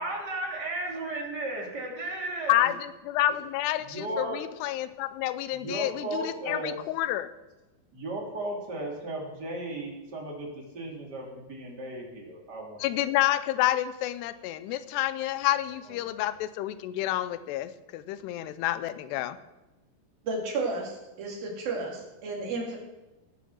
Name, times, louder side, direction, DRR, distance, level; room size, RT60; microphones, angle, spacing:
voice 1, 0.0-2.7 3.8-4.4 5.5-6.8 7.9-13.1 15.9-16.3, right 1 dB, 30° right, -2 dB, 2.8 m, -35 dB
voice 2, 2.5-7.3 12.8-19.4, left 14 dB, 85° left, 14 dB, 2.8 m, -29 dB
voice 3, 20.2-22.8, right 3 dB, 65° right, -1 dB, 4.4 m, -32 dB
19.0 x 7.1 x 6.3 m, 1.1 s
omnidirectional pair, 4.7 m